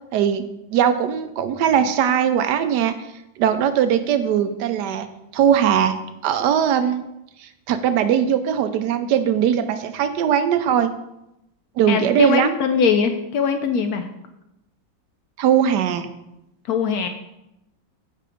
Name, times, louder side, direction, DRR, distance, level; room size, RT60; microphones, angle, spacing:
voice 1, 0.1-0.4 0.7-3.0 3.4-5.1 5.3-6.0 6.2-7.0 7.4-10.9 11.8-12.5 15.4-16.1, right 9 dB, 70° right, 10 dB, 1.0 m, -20 dB
voice 2, 11.9-14.1 16.7-17.1, left 6 dB, 80° left, 7 dB, 0.8 m, -21 dB
7.6 x 4.6 x 5.0 m, 0.88 s
omnidirectional pair, 2.1 m